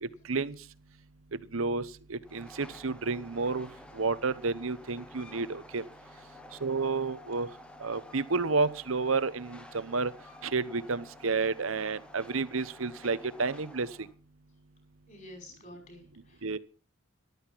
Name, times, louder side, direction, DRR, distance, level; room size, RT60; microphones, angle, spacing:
voice 1, 0.0-0.6 1.5-5.8 6.6-7.5 7.8-10.1 10.4-14.1 16.4-16.6, right 4 dB, 80° right, 15 dB, 0.9 m, -31 dB
Train, 2.2-14.1, left 1 dB, 5° left, 1.0 m, -51 dB
voice 2, 15.1-16.6, left 1 dB, 40° left, 4 dB, 5.8 m, -50 dB
13.5 x 12.5 x 5.6 m, 0.39 s
head